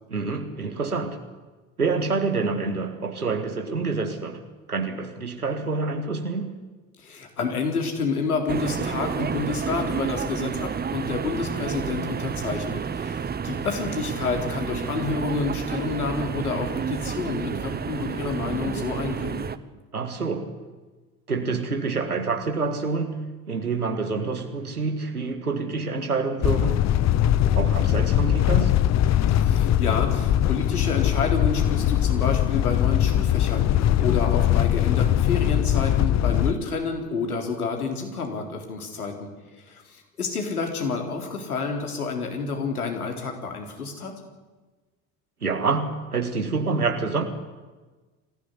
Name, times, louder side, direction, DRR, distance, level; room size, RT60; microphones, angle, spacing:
voice 1, 0.1-1.2 1.8-6.6 19.9-20.6 21.3-26.9 27.6-28.8 45.4-47.3, right 4 dB, 85° right, 1.9 m, -27 dB
voice 2, 7.0-19.5 29.3-39.3 39.7-44.1, left 4 dB, 80° left, 4.0 m, -29 dB
sound 1, 8.5-19.6, right 6 dB, 20° right, 1.1 m, -30 dB
sound 2, 26.4-36.5, left 11 dB, 35° left, 1.0 m, -21 dB
23.5 x 16.0 x 9.9 m
figure-of-eight pair, 60°, 44 cm